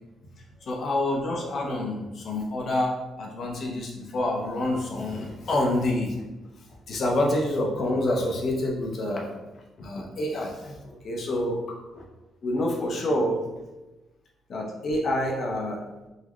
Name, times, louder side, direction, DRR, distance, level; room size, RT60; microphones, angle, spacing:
voice 1, 0.6-6.2 6.9-9.3 9.8-10.8 11.0-12.0 12.4-13.4 14.5-15.8, left 1 dB, 55° left, 0 dB, 0.7 m, -27 dB
3.9 x 2.1 x 3.0 m, 1.1 s
cardioid pair, 90°, 0 cm